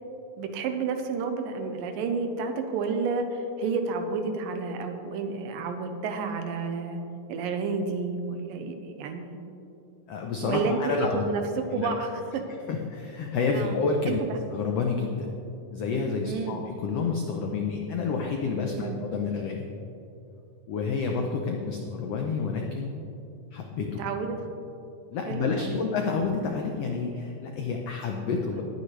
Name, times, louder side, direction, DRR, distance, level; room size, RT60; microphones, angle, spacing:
voice 1, 0.4-7.0 7.3-9.4 10.4-12.4 13.5-13.7 14.1-14.4 16.2-16.6 18.7-19.0 24.0-24.4 25.3-25.8, right 4 dB, 90° right, 6 dB, 2.6 m, -30 dB
voice 2, 10.1-11.2 11.8-11.9 12.7-14.2 14.5-15.3 15.7-19.7 20.7-22.9 23.5-24.0 25.1-28.6, left 4 dB, 80° left, 2 dB, 1.4 m, -29 dB
19.5 x 9.4 x 3.3 m, 2.8 s
omnidirectional pair, 3.9 m